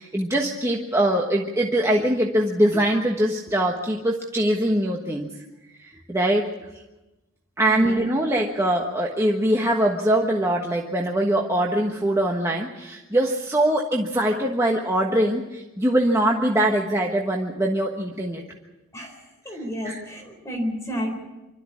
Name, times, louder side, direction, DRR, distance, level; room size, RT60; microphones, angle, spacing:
voice 1, 0.0-5.3 5.8-6.5 7.6-18.4 19.8-20.0, right 1 dB, 15° right, -1 dB, 1.3 m, -22 dB
voice 2, 7.7-8.0 18.9-21.2, equal, 15° left, 1 dB, 4.1 m, -31 dB
25.0 x 13.0 x 8.5 m, 1.0 s
head